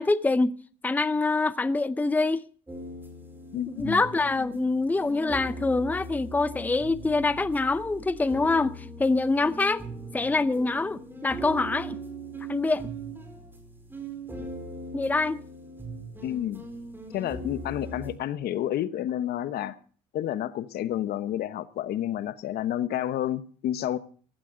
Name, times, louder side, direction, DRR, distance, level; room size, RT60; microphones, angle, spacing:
voice 1, 0.0-2.5 3.7-9.8 10.1-12.0 12.5-12.9 14.9-15.4, left 3 dB, 10° left, 0.6 m, -25 dB
sound 1, 2.7-18.2, right 1 dB, 10° right, 4.9 m, -40 dB
voice 2, 3.5-4.0 16.2-16.7 17.1-19.8 20.1-24.0, left 11 dB, 70° left, 1.1 m, -30 dB
17.0 x 15.5 x 3.8 m
cardioid pair, 110°, 17 cm